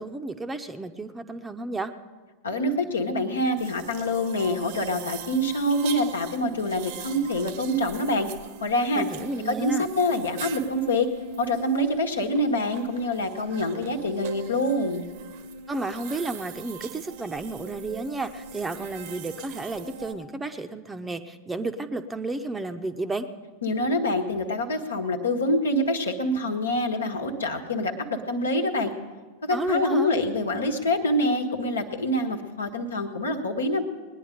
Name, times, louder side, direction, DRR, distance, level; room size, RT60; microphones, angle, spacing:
voice 1, 0.0-1.9 9.0-9.9 15.7-23.3 29.5-30.1, right 2 dB, 10° right, 9 dB, 0.7 m, -32 dB
voice 2, 2.4-8.3 8.6-9.1 9.4-11.1 11.4-15.0 23.6-28.9 29.4-33.8, left 1 dB, 70° left, 4 dB, 1.3 m, -26 dB
sound 1, 3.6-20.1, right 6 dB, 50° right, 0.8 m, -41 dB
20.0 x 10.0 x 5.1 m, 1.4 s
figure-of-eight pair, 90°, 0 cm